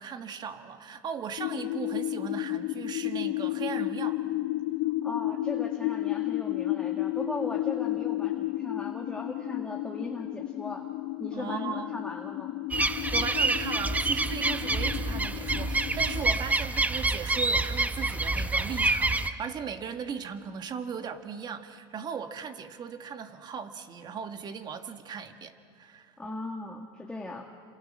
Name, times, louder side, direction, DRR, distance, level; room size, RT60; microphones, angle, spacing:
voice 1, 0.0-4.2 11.3-12.0 12.9-26.1, right 7 dB, 35° right, 8 dB, 1.8 m, -38 dB
sound 1, 1.4-16.4, left 17 dB, 60° left, 0.8 m, -32 dB
voice 2, 5.0-10.9 11.2-12.6 26.2-27.4, left 2 dB, 5° left, 1 dB, 2.0 m, -38 dB
sound 2, 12.7-19.3, right 2 dB, 10° right, 1.0 m, -27 dB
28.5 x 27.0 x 7.5 m, 2.1 s
supercardioid pair, 115°, 13 cm